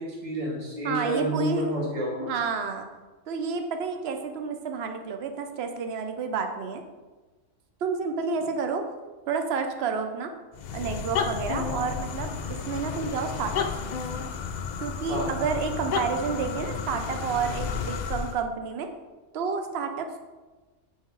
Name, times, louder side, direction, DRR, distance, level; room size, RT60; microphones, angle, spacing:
voice 1, 0.0-2.3 11.6-11.8 15.1-15.3, right 1 dB, 35° right, -5 dB, 1.9 m, -29 dB
voice 2, 0.8-1.7 2.3-2.9 3.3-6.8 7.8-8.8 9.3-10.3 10.7-13.5 13.8-13.9 14.8-18.9 19.3-20.2, right 5 dB, 60° right, 6 dB, 0.9 m, -30 dB
sound 1, 10.5-18.4, left 6 dB, 70° left, 0.4 m, -32 dB
8.4 x 3.7 x 4.6 m, 1.2 s
omnidirectional pair, 1.3 m